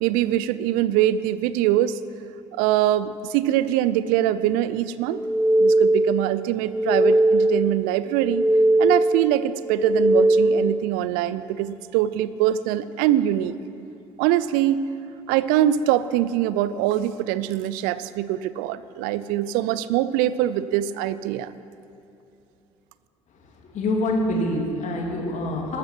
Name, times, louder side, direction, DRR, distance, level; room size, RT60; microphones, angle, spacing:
voice 1, 0.0-2.0 2.5-5.2 5.6-8.5 8.8-13.6 14.2-14.8 15.3-21.5, right 12 dB, 60° right, 16 dB, 0.5 m, -23 dB
sound 1, 4.9-6.1 6.4-7.6 7.9-9.1 9.5-10.6, right 1 dB, 30° right, 4.1 m, -20 dB
voice 2, 23.7-25.8, left 1 dB, 50° left, 0 dB, 3.0 m, -25 dB
13.5 x 13.5 x 6.1 m, 2.8 s
figure-of-eight pair, 55°, 16 cm